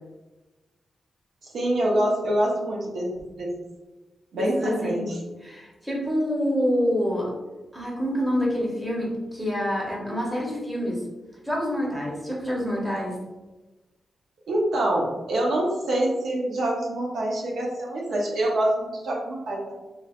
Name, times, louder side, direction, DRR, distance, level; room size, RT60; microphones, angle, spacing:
voice 1, 1.4-3.1 3.4-3.5 4.3-5.0 14.5-19.7, right 1 dB, 70° right, -2 dB, 0.7 m, -25 dB
voice 2, 4.3-5.1 5.4-7.3 7.7-11.0 11.4-13.2, equal, 5° right, -4 dB, 0.8 m, -27 dB
3.1 x 3.1 x 2.4 m, 1.2 s
wide cardioid pair, 165°, 0 cm